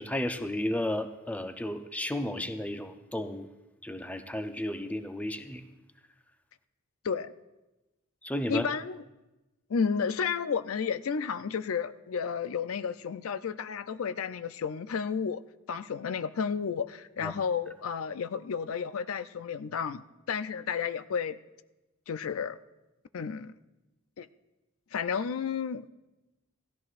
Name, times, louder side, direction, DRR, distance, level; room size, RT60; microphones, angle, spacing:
voice 1, 0.0-3.5 3.8-5.7 8.2-8.7 17.2-17.3, left 1 dB, 5° left, 7 dB, 0.6 m, -33 dB
voice 2, 7.0-7.4 8.5-9.0 9.7-15.4 15.7-20.0 20.3-21.4 22.1-22.6 23.1-23.5 24.2-24.3 24.9-25.9, left 6 dB, 90° left, 12 dB, 0.4 m, -32 dB
17.5 x 13.5 x 2.5 m, 1.0 s
head